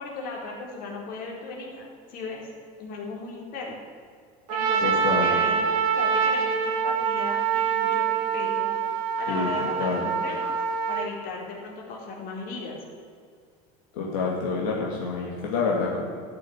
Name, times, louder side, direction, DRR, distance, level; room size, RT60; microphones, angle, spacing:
voice 1, 0.0-2.5 2.8-3.8 4.5-12.8, left 3 dB, 55° left, -1 dB, 4.0 m, -37 dB
Trumpet, 4.5-11.1, right 7 dB, 85° right, 2.4 m, -25 dB
voice 2, 4.8-5.4 9.3-9.5 9.8-10.0 13.9-16.0, left 4 dB, 85° left, -3 dB, 2.5 m, -27 dB
13.0 x 6.8 x 9.5 m, 2.1 s
supercardioid pair, 130°, 18 cm